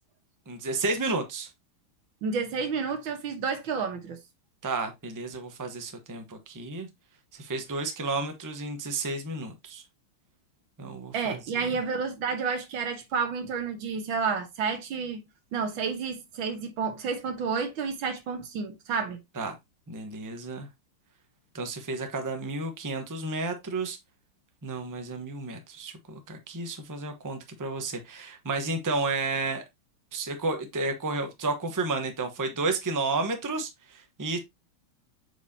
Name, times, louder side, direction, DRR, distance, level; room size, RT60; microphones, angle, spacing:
voice 1, 0.5-1.5 4.6-6.9 7.3-9.8 10.8-11.7 19.4-19.5 19.9-20.7 21.5-24.0 24.6-29.6 30.1-34.4, right 3 dB, 20° right, 0.5 m, -32 dB
voice 2, 2.2-4.2 11.1-15.2 15.5-19.2, right 5 dB, 70° right, 2.0 m, -30 dB
8.0 x 4.8 x 2.7 m
omnidirectional pair, 2.3 m